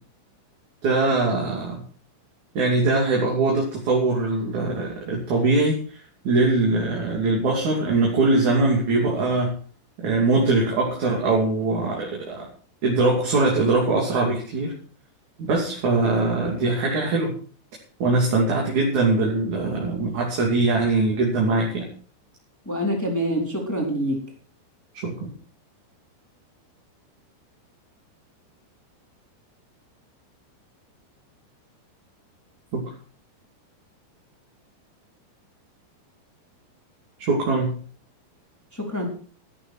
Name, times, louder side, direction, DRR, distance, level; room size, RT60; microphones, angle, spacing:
voice 1, 0.8-1.8 2.6-5.8 6.2-9.5 10.0-12.5 12.8-14.7 15.4-17.3 18.0-21.9 25.0-25.3 32.7-32.9 37.2-37.7, right 3 dB, 45° right, -2 dB, 4.0 m, -22 dB
voice 2, 22.7-24.2 38.8-39.1, equal, 5° left, -1 dB, 3.4 m, -25 dB
13.5 x 13.5 x 4.5 m, 0.42 s
omnidirectional pair, 5.0 m